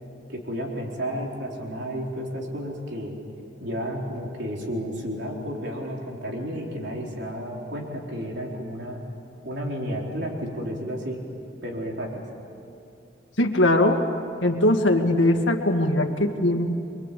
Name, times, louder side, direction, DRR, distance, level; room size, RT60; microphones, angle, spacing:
voice 1, 0.3-3.1 3.6-9.0 9.4-11.2 11.6-12.2, equal, 55° right, -1 dB, 4.2 m, -32 dB
voice 2, 13.4-14.0 14.4-16.8, left 1 dB, 65° left, 4 dB, 2.1 m, -21 dB
27.0 x 23.5 x 8.5 m, 2.6 s
head